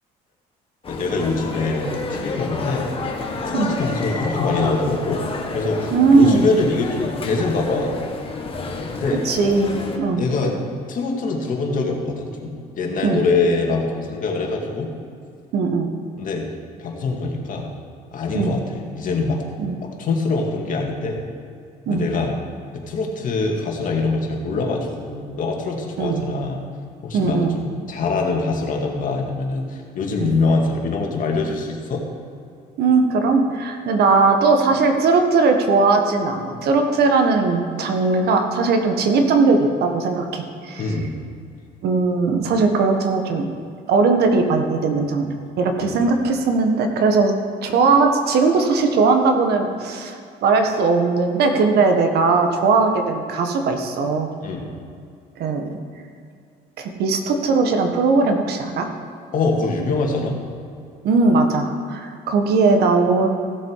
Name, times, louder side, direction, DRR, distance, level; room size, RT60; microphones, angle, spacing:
sound 1, 0.8-10.0, left 3 dB, 35° left, 1.6 m, -29 dB
voice 1, 0.9-2.9 3.5-5.2 5.5-8.0 8.9-9.2 10.1-10.6 10.9-14.9 16.2-16.5 16.8-17.7 18.1-19.4 19.8-21.2 21.9-22.3 22.7-26.6 27.0-32.0 40.8-41.1 45.8-46.0 54.4-54.7 59.3-60.4, left 3 dB, 50° left, 0 dB, 2.2 m, -24 dB
voice 2, 5.9-6.5 9.2-10.2 13.0-13.2 15.5-15.9 18.3-18.5 19.6-19.8 21.9-22.0 26.0-26.3 27.1-27.6 30.2-30.3 32.8-41.0 41.8-43.4 43.9-47.3 47.6-54.3 55.4-55.6 56.8-58.9 61.0-63.3, right 4 dB, 70° right, 5 dB, 1.4 m, -19 dB
16.0 x 7.3 x 4.7 m, 2.4 s
cardioid pair, 110°, 17 cm